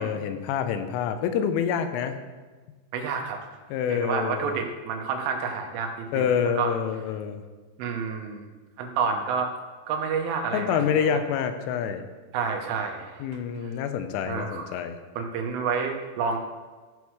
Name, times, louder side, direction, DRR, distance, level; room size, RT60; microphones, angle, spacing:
voice 1, 0.0-2.2 3.7-4.6 6.1-7.4 10.5-12.0 13.2-15.0, left 7 dB, 85° left, 8 dB, 3.2 m, -27 dB
voice 2, 2.9-3.4 3.9-6.3 6.6-6.7 7.8-8.5 8.8-9.5 9.9-11.2 12.3-13.3 13.6-13.7 14.3-14.7 15.2-16.4, right 5 dB, 85° right, 3 dB, 3.6 m, -29 dB
14.5 x 6.2 x 4.7 m, 1.3 s
omnidirectional pair, 5.6 m